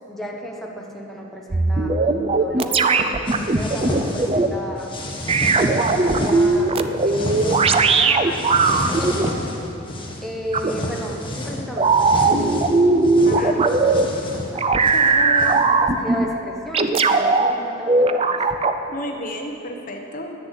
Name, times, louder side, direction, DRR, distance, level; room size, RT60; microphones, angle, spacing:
voice 1, 0.1-2.0 2.3-4.9 5.5-9.5 10.2-12.8 13.4-13.7 14.1-14.7 15.4-18.4, equal, ahead, -1 dB, 1.1 m, -33 dB
sound 1, 1.5-4.5 5.3-9.3 10.5-10.7 11.8-14.0 14.5-16.2 16.7-17.5 17.9-18.8, right 3 dB, 30° right, 0.5 m, -18 dB
sound 2, 3.2-4.5 4.8-6.6 7.0-8.0 8.3-10.2 10.5-15.7, left 1 dB, 25° left, 1.4 m, -30 dB
voice 2, 13.3-13.6 14.8-15.9 18.9-20.4, left 1 dB, 45° left, 3 dB, 1.0 m, -32 dB
10.5 x 8.2 x 9.9 m, 2.8 s
head